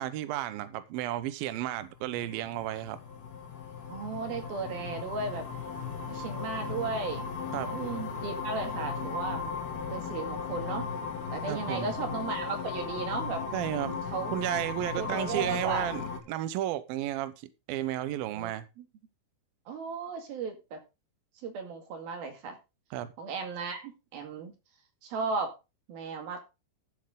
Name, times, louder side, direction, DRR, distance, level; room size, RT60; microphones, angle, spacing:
voice 1, 0.0-3.0 7.5-7.7 11.5-11.9 13.5-14.0 14.3-17.3 17.7-18.7 22.9-23.1, right 13 dB, 90° right, 2.1 m, -33 dB
sound 1, 1.8-16.2, left 5 dB, 60° left, 3.8 m, -36 dB
voice 2, 3.9-5.5 6.1-7.3 7.6-9.4 9.9-10.9 11.3-13.4 14.1-14.3 14.9-15.9 18.3-18.5 18.8-18.9 19.7-20.8 21.4-22.6 23.2-24.5 25.0-25.5 25.9-26.4, right 4 dB, 55° right, 3.5 m, -35 dB
14.5 x 7.7 x 3.7 m
omnidirectional pair, 5.6 m